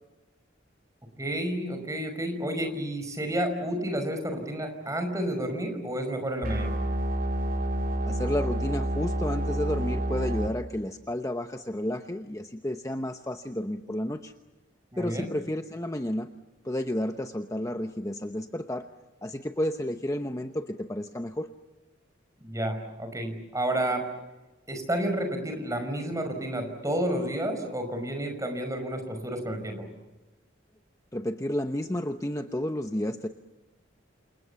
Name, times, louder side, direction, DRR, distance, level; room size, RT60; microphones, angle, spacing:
voice 1, 1.2-6.7 14.9-15.3 22.4-24.0 24.7-29.9, right 1 dB, 15° right, 6 dB, 5.5 m, -30 dB
sound 1, 6.4-10.5, right 1 dB, 45° right, 3.3 m, -28 dB
voice 2, 8.0-14.3 15.0-16.3 16.6-18.9 19.2-21.5 31.1-33.3, left 1 dB, 15° left, 7 dB, 0.9 m, -31 dB
28.5 x 28.5 x 7.1 m, 1.1 s
head